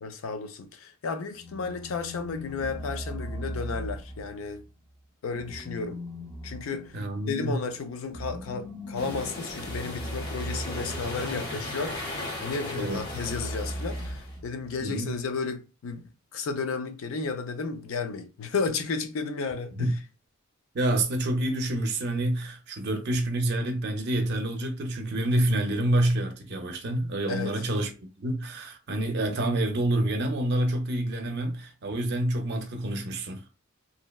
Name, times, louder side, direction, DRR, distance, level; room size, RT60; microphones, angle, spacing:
voice 1, 0.0-4.6 5.2-6.0 6.4-7.0 7.3-12.0 12.4-19.9 27.3-27.5, left 4 dB, 75° left, 0.4 m, -33 dB
sound 1, 1.3-4.6 5.3-11.9 12.9-14.8, equal, ahead, 0.5 m, -38 dB
voice 2, 6.9-7.6 12.7-13.0 14.8-15.1 19.8-19.9 20.7-27.9 28.2-33.4, right 1 dB, 55° right, 0.5 m, -27 dB
sound 2, 8.9-14.3, left 1 dB, 50° left, 0.8 m, -37 dB
2.6 x 2.1 x 2.2 m
head